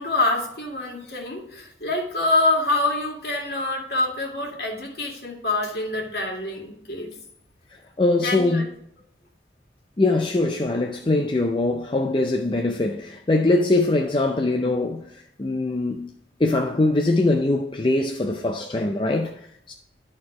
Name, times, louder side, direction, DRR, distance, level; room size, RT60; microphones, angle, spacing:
voice 1, 0.0-7.1 8.2-8.7, left 2 dB, 60° left, 2.1 m, -26 dB
voice 2, 8.0-8.7 10.0-19.7, left 2 dB, 25° left, 0.5 m, -22 dB
11.5 x 4.3 x 4.8 m
head